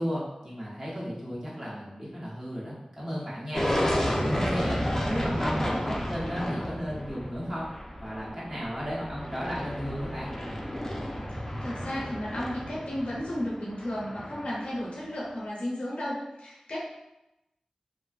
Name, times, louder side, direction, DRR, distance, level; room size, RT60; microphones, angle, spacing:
voice 1, 0.0-3.7 4.1-7.7 8.0-10.3, equal, 30° right, -7 dB, 0.9 m, -34 dB
sound 1, 3.5-14.8, equal, 20° left, 0.4 m, -32 dB
voice 2, 11.4-16.8, left 1 dB, 70° left, -6 dB, 0.5 m, -34 dB
2.5 x 2.3 x 2.2 m, 0.92 s
wide cardioid pair, 50°, 2 cm